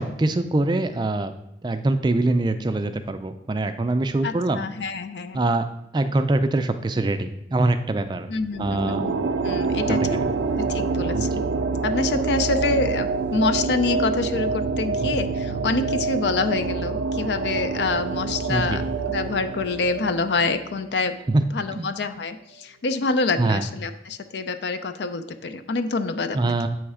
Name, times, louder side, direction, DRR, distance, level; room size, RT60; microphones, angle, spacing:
voice 1, 0.0-1.3 1.6-4.6 5.3-5.6 5.9-8.3 8.6-9.1 9.9-10.0 11.1-11.3 18.5-18.8 21.3-21.4 21.8-21.9 23.4-23.6 26.3-26.7, right 2 dB, 25° right, 9 dB, 0.3 m, -23 dB
voice 2, 4.2-5.4 8.3-10.2 10.6-11.4 11.8-21.1 21.5-26.5, left 3 dB, 65° left, 10 dB, 0.5 m, -26 dB
sound 1, 8.5-21.1, right 4 dB, 85° right, 0.4 m, -26 dB
7.8 x 3.2 x 4.8 m, 0.82 s
head